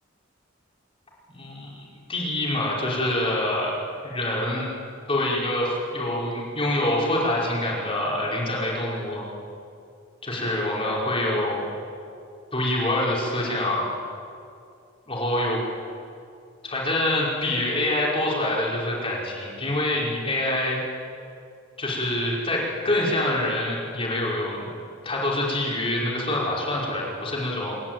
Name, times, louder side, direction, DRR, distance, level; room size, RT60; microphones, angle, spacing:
voice 1, 1.3-3.7 4.0-4.7 5.1-9.2 10.2-11.6 12.5-13.9 15.1-15.6 16.6-20.8 21.8-24.7 25.0-27.7, left 1 dB, 30° left, -4 dB, 5.5 m, -25 dB
27.5 x 13.5 x 9.2 m, 2.4 s
head